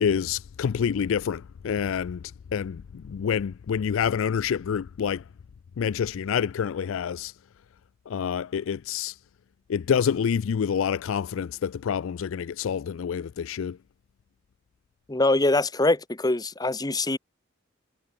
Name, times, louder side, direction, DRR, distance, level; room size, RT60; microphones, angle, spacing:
voice 1, 0.0-2.2 2.5-5.2 5.8-7.3 8.1-9.1 9.7-13.8, left 7 dB, 65° left, 0.3 m, -27 dB
voice 2, 15.1-17.2, left 2 dB, 20° left, 1.0 m, -23 dB
head